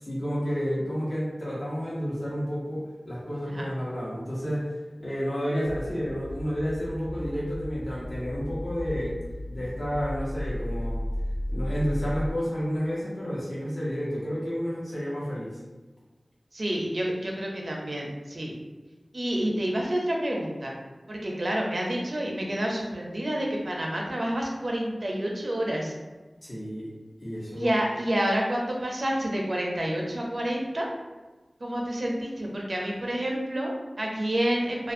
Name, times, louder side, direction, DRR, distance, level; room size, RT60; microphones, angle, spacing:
voice 1, 0.0-4.7 5.0-9.2 9.5-11.1 11.5-15.6 26.4-26.9 27.2-27.8, equal, 55° left, -7 dB, 1.0 m, -30 dB
sound 1, 5.6-12.3, equal, 25° left, 0.5 m, -34 dB
voice 2, 16.5-18.5 19.1-20.7 21.1-25.9 27.6-30.9 31.6-34.9, right 1 dB, 65° right, -1 dB, 0.5 m, -29 dB
2.4 x 2.2 x 2.6 m, 1.2 s
wide cardioid pair, 45°, 0 cm